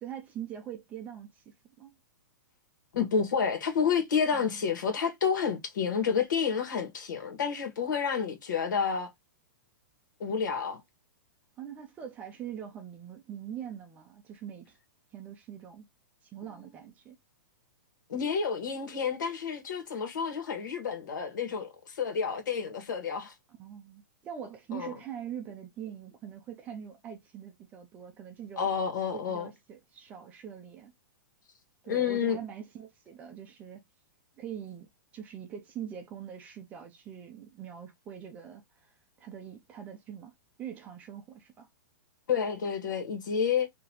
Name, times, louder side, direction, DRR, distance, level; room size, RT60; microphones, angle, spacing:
voice 1, 0.0-1.4 1.8-2.0 4.3-4.6 11.6-14.8 15.1-15.9 16.2-17.2 23.6-28.7 29.1-30.9 31.8-33.8 34.4-38.9 39.2-40.3 40.6-41.7, right 9 dB, 15° right, 0.5 m, -43 dB
voice 2, 2.9-9.1 10.2-10.8 18.1-23.3 24.7-24.9 28.6-29.5 31.9-32.4 42.3-43.7, left 6 dB, 75° left, 1.6 m, -29 dB
3.8 x 2.9 x 2.9 m
hypercardioid pair, 170°, 10 cm